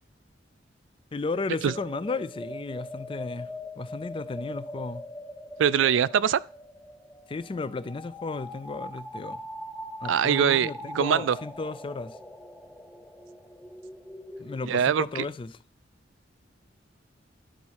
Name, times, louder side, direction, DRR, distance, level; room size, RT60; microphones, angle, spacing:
voice 1, 1.1-3.5 3.8-5.0 7.3-9.4 10.0-12.2 14.4-15.6, left 3 dB, 30° left, 0.4 m, -34 dB
sound 1, 1.3-14.6, left 1 dB, 5° left, 0.7 m, -42 dB
voice 2, 5.6-6.4 10.1-11.4 14.6-15.2, right 8 dB, 80° right, 0.3 m, -23 dB
11.5 x 4.1 x 4.7 m
head